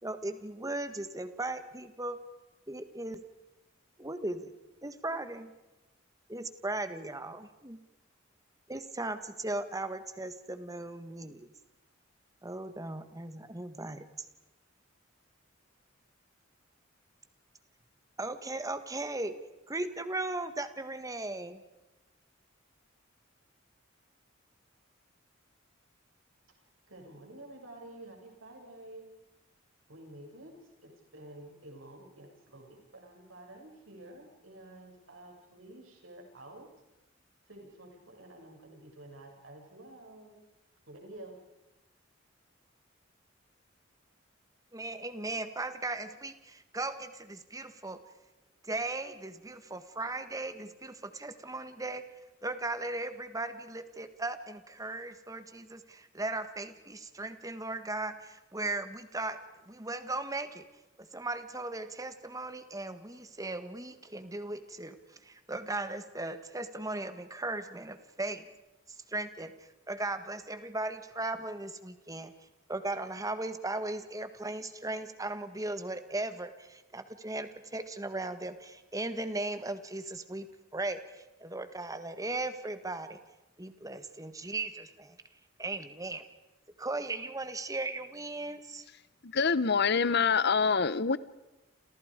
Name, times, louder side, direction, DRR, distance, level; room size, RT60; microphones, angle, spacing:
voice 1, 0.0-2.2 2.7-3.2 4.0-4.5 4.8-5.5 6.3-7.8 8.7-11.5 12.4-14.3 18.2-19.4 19.7-21.6 44.7-48.0 48.6-52.0 52.4-59.4 59.7-60.6 61.0-68.5 68.9-72.3 72.7-80.5 80.7-83.2 83.6-85.2 85.6-86.2 86.8-88.9, right 2 dB, 15° right, 10 dB, 1.6 m, -37 dB
voice 2, 26.9-29.1 29.9-30.5 30.8-36.7 37.5-40.4 40.9-41.4, right 1 dB, 75° right, 1 dB, 7.1 m, -50 dB
voice 3, 89.2-91.2, left 5 dB, 55° left, 17 dB, 0.9 m, -26 dB
30.0 x 28.5 x 5.1 m, 1.0 s
head